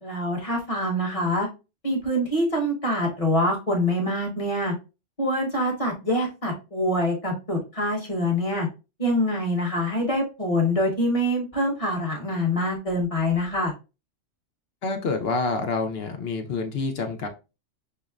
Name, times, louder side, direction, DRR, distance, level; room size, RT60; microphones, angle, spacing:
voice 1, 0.0-1.5 1.8-4.7 5.2-8.7 9.0-13.7, left 1 dB, 30° left, 1 dB, 0.9 m, -25 dB
voice 2, 14.8-17.3, left 3 dB, 60° left, 5 dB, 0.8 m, -27 dB
5.6 x 2.0 x 2.3 m, 0.29 s
omnidirectional pair, 1.3 m